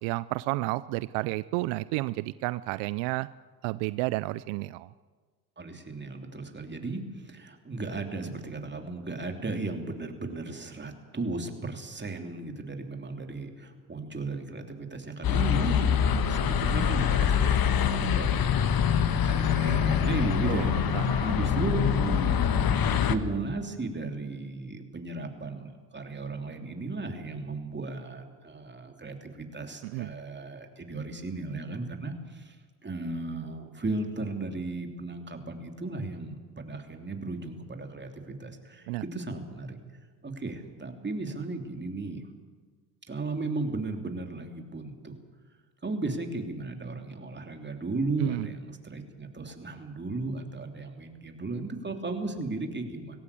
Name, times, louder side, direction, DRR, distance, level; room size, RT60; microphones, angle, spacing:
voice 1, 0.0-3.3 3.6-4.9 20.5-21.3 29.8-30.1 38.9-39.0 48.2-48.5, right 20 dB, 85° right, 17 dB, 0.5 m, -31 dB
voice 2, 5.6-20.7 21.2-32.5 32.8-39.8 40.2-42.3 43.1-45.1 45.8-53.2, right 3 dB, 25° right, 4 dB, 3.2 m, -35 dB
sound 1, 15.2-23.2, left 8 dB, 50° left, 1.4 m, -25 dB
19.5 x 16.5 x 8.5 m, 1.4 s
supercardioid pair, 70°, 46 cm